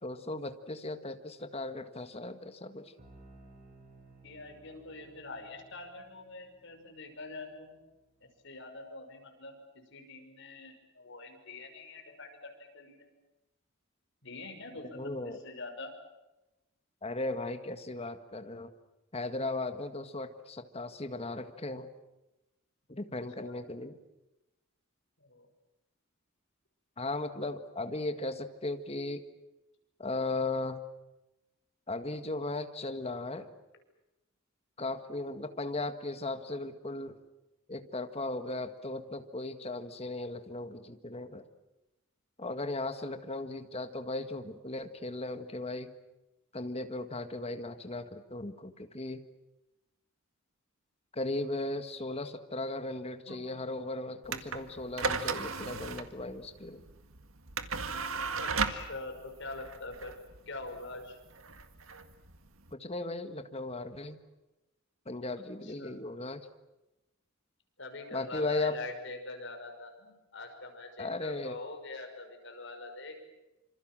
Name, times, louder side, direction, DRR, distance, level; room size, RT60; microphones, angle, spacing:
voice 1, 0.0-2.9 14.9-15.4 17.0-18.7 19.1-21.9 22.9-24.0 27.0-29.2 30.0-30.8 31.9-33.5 34.8-37.2 37.7-41.5 42.4-45.9 46.5-49.2 51.1-56.8 62.7-64.2 65.1-66.4 68.1-68.8 71.0-71.6, left 2 dB, 30° left, 8 dB, 1.7 m, -37 dB
sound 1, 3.0-8.6, right 2 dB, 40° right, 6.6 m, -59 dB
voice 2, 4.2-7.7 8.4-13.1 14.2-15.9 22.9-23.0 23.4-23.6 25.2-25.5 53.3-53.4 58.4-60.1 60.5-61.2 65.6-66.0 67.8-73.2, left 3 dB, 65° left, 4 dB, 5.9 m, -44 dB
sound 2, 54.2-62.7, right 4 dB, 80° right, 1.8 m, -36 dB
26.5 x 26.5 x 7.6 m, 0.99 s
head